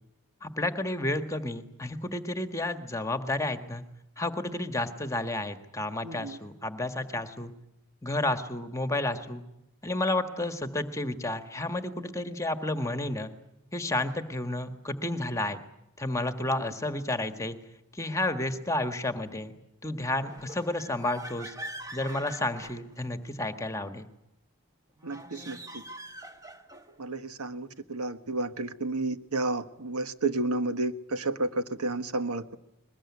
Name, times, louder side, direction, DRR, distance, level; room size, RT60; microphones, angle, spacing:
voice 1, 0.4-3.8 4.2-7.5 8.0-9.4 9.8-13.3 13.7-15.6 16.0-17.6 17.9-19.5 19.8-21.5 21.9-24.1, left 2 dB, 15° left, 8 dB, 1.5 m, -31 dB
voice 2, 6.0-6.4 25.0-25.8 27.0-32.4, right 2 dB, 90° right, 10 dB, 1.4 m, -31 dB
sound 1, 20.2-23.4 25.0-27.0, right 1 dB, 15° right, 1.3 m, -44 dB
22.0 x 21.0 x 9.7 m, 0.85 s
head